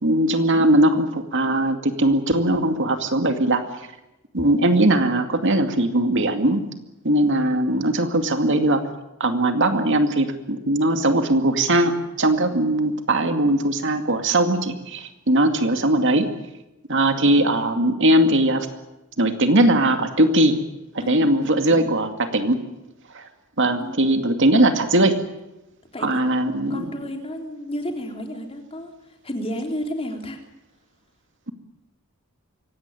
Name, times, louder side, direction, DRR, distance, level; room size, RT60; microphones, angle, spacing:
voice 1, 0.0-3.6 4.3-6.6 7.0-8.8 9.2-16.3 16.9-18.7 19.2-20.6 20.9-22.6 23.1-23.2 23.6-25.2 26.0-26.8, right 1 dB, 60° right, 6 dB, 2.3 m, -20 dB
voice 2, 21.0-22.0 23.8-24.0 25.9-26.2 26.7-28.9 29.2-30.4, equal, 25° left, 3 dB, 3.5 m, -32 dB
24.5 x 17.5 x 9.9 m, 0.95 s
head